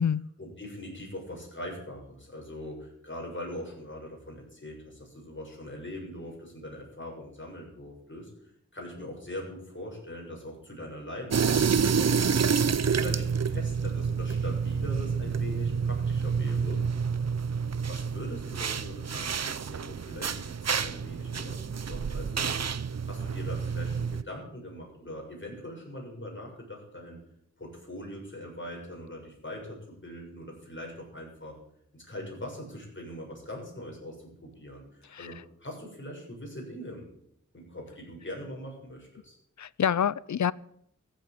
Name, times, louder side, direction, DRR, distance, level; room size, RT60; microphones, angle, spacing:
voice 1, 0.4-8.3 8.7-12.3 12.9-16.8 17.8-27.2 27.6-31.6 31.9-37.1 37.5-39.3, left 1 dB, 40° left, -1 dB, 6.9 m, -42 dB
sound 1, 11.3-24.2, right 6 dB, 60° right, 0.6 m, -28 dB
voice 2, 39.6-40.5, left 8 dB, 75° left, 22 dB, 0.5 m, -27 dB
15.0 x 8.1 x 8.5 m, 0.72 s
wide cardioid pair, 65°, 29 cm